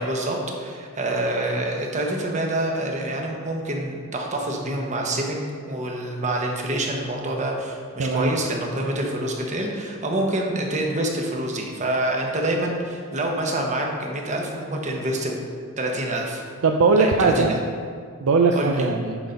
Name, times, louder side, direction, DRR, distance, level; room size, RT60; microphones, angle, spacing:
voice 1, 0.0-5.4 5.7-15.3 15.8-16.4 17.0-17.6 18.5-18.9, right 1 dB, 35° right, 1 dB, 1.1 m, -26 dB
voice 2, 8.0-8.4 16.6-17.5 18.2-19.2, right 4 dB, 65° right, 3 dB, 0.5 m, -19 dB
10.0 x 4.0 x 5.2 m, 2.1 s
head